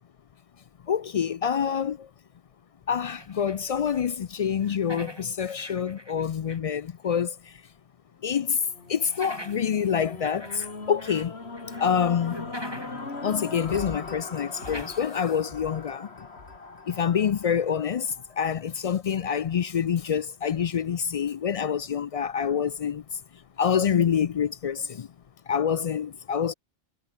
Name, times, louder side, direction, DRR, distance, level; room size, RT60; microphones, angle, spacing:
voice 1, 0.9-2.1 2.9-7.6 8.2-8.6 8.9-11.4 11.8-12.5 13.2-16.3 16.9-23.0 23.6-25.1 25.5-26.5, left 7 dB, 55° left, 0.4 m, -26 dB
sound 1, 3.0-4.1 4.4-6.8 7.2-7.3 8.9-11.3 11.6-13.1 13.4-13.5 14.5-15.5, equal, 25° right, 8.0 m, -44 dB
sound 2, 8.6-18.9 19.5-19.6, left 3 dB, 80° left, 3.2 m, -40 dB
omnidirectional pair, 1.1 m